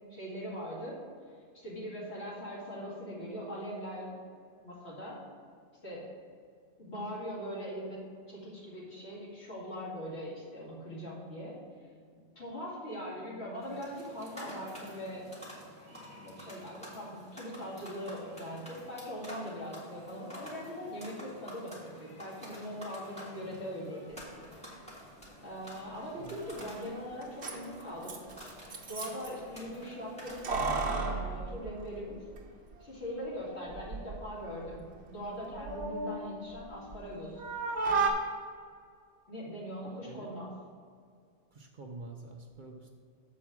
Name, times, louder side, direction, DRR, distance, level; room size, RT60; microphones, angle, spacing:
voice 1, 0.1-1.0 1.5-4.1 4.6-5.2 5.8-6.1 6.8-8.0 8.3-11.6 12.4-15.3 16.1-24.2 25.4-28.2 28.9-32.2 32.8-37.4 39.3-40.5, equal, 70° left, -6 dB, 2.5 m, -41 dB
sound 1, 13.6-30.9, equal, 5° left, 2.0 m, -49 dB
Keys jangling, 26.3-26.4 26.5-26.6 27.2-29.3 30.3-32.4 32.7-32.8 33.7-34.2 34.6-37.1 37.4-38.1, right 4 dB, 65° right, 1.2 m, -34 dB
voice 2, 39.8-40.4 41.5-42.9, right 2 dB, 50° right, 2 dB, 0.8 m, -47 dB
7.3 x 4.8 x 6.0 m, 2.2 s
omnidirectional pair, 1.2 m